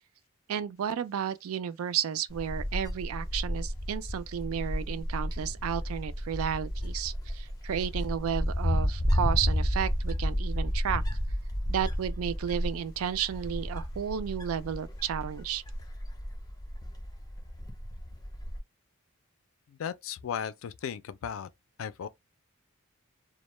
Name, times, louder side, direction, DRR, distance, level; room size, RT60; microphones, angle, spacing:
voice 1, 0.5-11.0 11.7-15.6, right 8 dB, 85° right, 0.3 m, -32 dB
Wind, 2.3-18.6, equal, 20° left, 0.5 m, -32 dB
voice 2, 19.7-21.5 21.8-22.1, left 8 dB, 75° left, 0.3 m, -36 dB
2.1 x 2.0 x 3.0 m
head